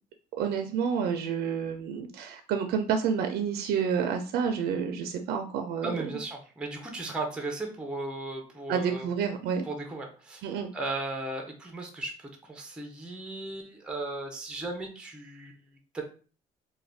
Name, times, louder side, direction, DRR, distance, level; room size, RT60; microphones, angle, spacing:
voice 1, 0.4-6.1 8.7-9.6 10.4-10.7, right 7 dB, 70° right, 5 dB, 0.4 m, -29 dB
voice 2, 5.8-9.1 9.6-16.0, right 2 dB, 5° right, 3 dB, 0.5 m, -36 dB
2.4 x 2.2 x 3.3 m, 0.39 s
cardioid pair, 110°, 17 cm